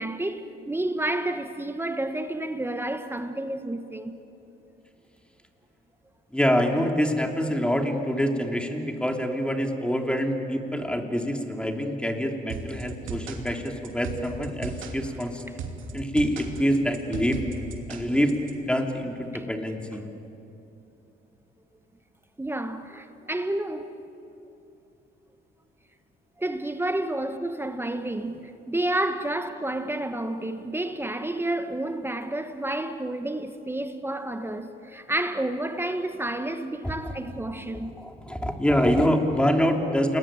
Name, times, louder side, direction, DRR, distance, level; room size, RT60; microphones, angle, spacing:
voice 1, 0.0-4.1 19.3-19.4 22.4-23.9 26.4-38.0, right 1 dB, 10° right, 1.3 m, -30 dB
voice 2, 6.3-15.4 15.9-17.4 17.9-18.3 18.7-20.0 38.0-40.2, equal, 5° left, 3.0 m, -25 dB
sound 1, 12.5-18.5, right 4 dB, 80° right, 2.9 m, -36 dB
29.0 x 21.0 x 9.1 m
cardioid pair, 90°, 20 cm